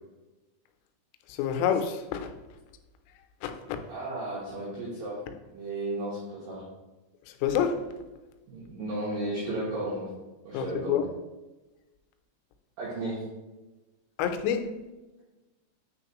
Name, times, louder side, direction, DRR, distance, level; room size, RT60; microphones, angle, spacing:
voice 1, 1.3-2.3 3.4-3.8 7.4-7.8 10.5-11.0 14.2-14.7, left 8 dB, 90° left, 6 dB, 3.3 m, -27 dB
voice 2, 3.9-5.2 5.5-6.7 8.5-10.1 10.5-11.0 12.8-13.2, right 1 dB, 80° right, -6 dB, 2.0 m, -34 dB
9.0 x 3.6 x 2.9 m, 1.1 s
omnidirectional pair, 5.8 m